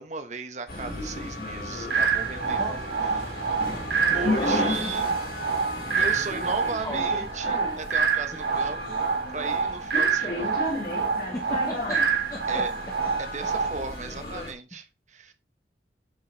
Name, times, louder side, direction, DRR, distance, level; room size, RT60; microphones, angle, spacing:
voice 1, 0.0-3.6 4.1-5.1 5.9-9.0 9.3-10.7 12.5-12.7 13.2-15.3, right 3 dB, 40° right, 1.1 m, -36 dB
sound 1, 0.7-14.5, left 1 dB, 55° left, 3.0 m, -34 dB
sound 2, 1.9-13.9, right 5 dB, 70° right, 1.3 m, -27 dB
voice 2, 11.3-12.7 13.0-13.1 14.1-14.2, left 1 dB, 20° left, 1.4 m, -37 dB
8.9 x 5.4 x 4.0 m
head